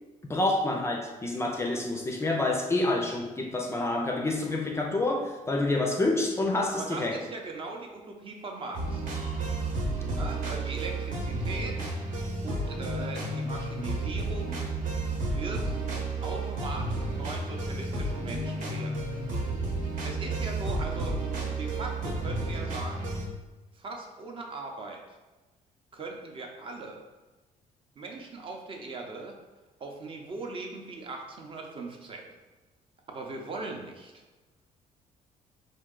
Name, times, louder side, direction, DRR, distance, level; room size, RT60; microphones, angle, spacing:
voice 1, 0.2-7.2, left 2 dB, 20° left, 1 dB, 0.4 m, -28 dB
voice 2, 6.8-9.1 10.1-11.9 12.4-14.7 15.3-15.8 16.2-18.9 20.0-21.2 21.6-23.2 23.7-25.0 25.9-27.0 28.0-29.4 29.8-32.3 33.1-34.2, right 3 dB, 40° right, 2 dB, 0.6 m, -39 dB
sound 1, 8.7-23.3, right 2 dB, 65° right, 1.0 m, -32 dB
4.4 x 2.7 x 3.7 m, 1.2 s
cardioid pair, 140°, 15 cm